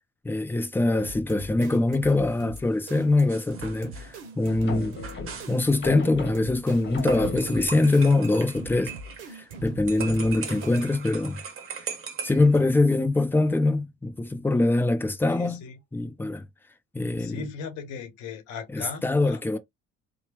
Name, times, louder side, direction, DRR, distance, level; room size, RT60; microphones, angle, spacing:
voice 1, 0.2-5.0 5.5-8.9 9.3-11.4 12.2-15.6 15.9-16.4 16.9-17.5 18.7-19.6, left 2 dB, 5° left, 0.5 m, -23 dB
sound 1, 1.0-11.1, right 2 dB, 90° right, 0.7 m, -42 dB
sound 2, 3.3-5.6 7.0-9.6 9.9-12.6, right 6 dB, 40° right, 0.8 m, -39 dB
sound 3, 4.5-7.8, left 4 dB, 35° left, 1.2 m, -36 dB
voice 2, 15.3-15.7 17.2-19.6, left 6 dB, 60° left, 0.7 m, -38 dB
2.9 x 2.0 x 3.1 m
hypercardioid pair, 60°, 33 cm